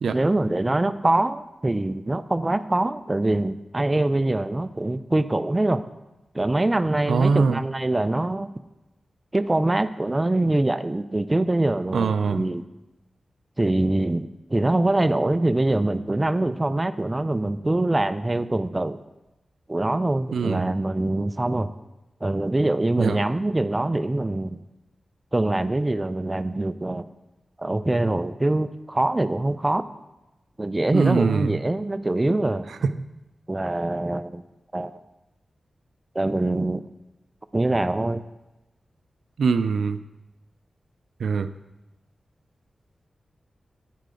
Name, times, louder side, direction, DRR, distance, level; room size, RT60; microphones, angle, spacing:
voice 1, 0.1-5.8 6.3-8.5 9.3-12.6 13.6-19.0 19.7-21.7 22.2-24.6 25.3-27.0 27.6-29.8 30.6-32.7 33.5-34.4 34.7-35.0 36.1-36.8 37.5-38.2, right 2 dB, 20° right, 13 dB, 0.3 m, -24 dB
voice 2, 7.1-7.6 11.9-12.4 20.3-20.7 23.0-23.2 30.9-31.6 39.4-40.0 41.2-41.5, right 5 dB, 90° right, 12 dB, 0.4 m, -22 dB
9.1 x 6.7 x 3.8 m, 1.0 s
wide cardioid pair, 100°, 0 cm